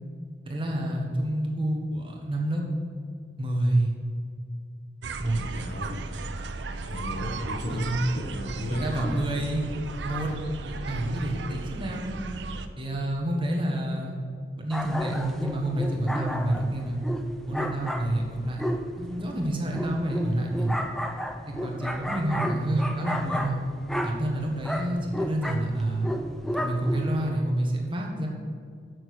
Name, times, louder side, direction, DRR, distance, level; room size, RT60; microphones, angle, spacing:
voice 1, 0.4-2.6 3.4-3.9 5.2-5.4 7.7-7.9 8.7-9.6 10.0-10.3 10.6-12.2 12.8-14.2 14.6-17.0 17.5-18.6 19.0-20.7 21.5-23.6 24.0-26.1 26.5-28.3, right 1 dB, 30° right, 0 dB, 1.3 m, -28 dB
sound 1, 5.0-12.7, right 3 dB, 75° right, 0.5 m, -35 dB
voice 2, 5.3-5.9 6.9-7.9 8.2-9.2, left 1 dB, 60° left, 2 dB, 1.1 m, -34 dB
sound 2, 14.7-27.3, equal, ahead, 0.4 m, -33 dB
6.5 x 6.4 x 6.4 m, 2.2 s
head